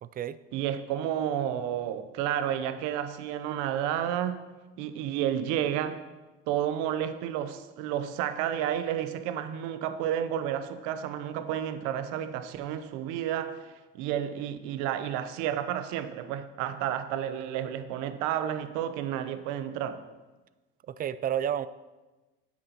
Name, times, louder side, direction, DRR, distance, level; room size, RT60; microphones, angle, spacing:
voice 1, 0.0-0.4 20.9-21.7, right 10 dB, 30° right, 0.4 m, -30 dB
voice 2, 0.5-4.4 4.8-6.0 6.5-20.0, right 10 dB, 70° right, 0.8 m, -31 dB
10.0 x 8.6 x 2.9 m
supercardioid pair, 80°, 31 cm